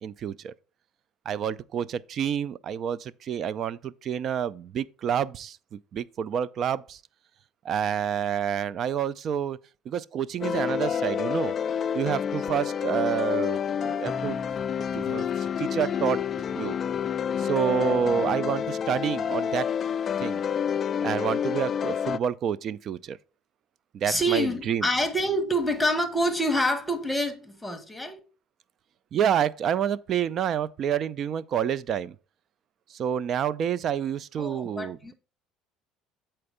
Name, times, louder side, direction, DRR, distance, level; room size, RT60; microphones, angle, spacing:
voice 1, 0.0-0.5 1.3-5.6 5.9-7.0 7.7-9.6 9.9-11.5 11.9-14.4 14.9-16.2 16.5-16.8 17.4-19.7 20.2-20.4 21.0-23.2 23.9-24.8 29.1-32.1 33.0-35.0, right 8 dB, 45° right, 0.4 m, -28 dB
sound 1, 10.4-22.2, left 8 dB, 35° left, 0.3 m, -28 dB
voice 2, 24.1-28.2 34.4-35.1, equal, 5° left, 1.2 m, -26 dB
7.8 x 4.4 x 4.9 m
cardioid pair, 120°, 0 cm